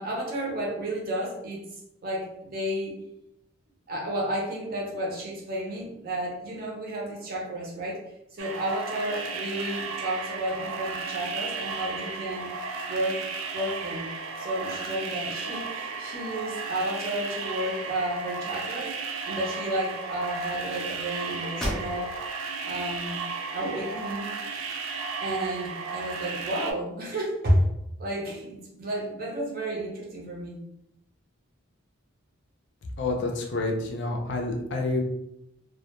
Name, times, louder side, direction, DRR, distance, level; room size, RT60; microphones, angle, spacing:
voice 1, 0.0-1.6 2.0-2.9 3.9-8.0 8.3-12.5 12.9-13.2 13.5-14.1 14.4-22.1 22.6-23.2 23.5-24.3 25.2-27.7 28.0-30.6, right 1 dB, 45° right, -2 dB, 0.6 m, -31 dB
sound 1, 8.4-26.7, right 4 dB, 85° right, 0.4 m, -34 dB
sound 2, 21.6-22.4 22.9-23.0 23.5-24.4, equal, ahead, 0.5 m, -35 dB
voice 2, 33.0-35.0, left 2 dB, 55° left, 1 dB, 0.4 m, -28 dB
2.2 x 2.1 x 2.8 m, 0.83 s
head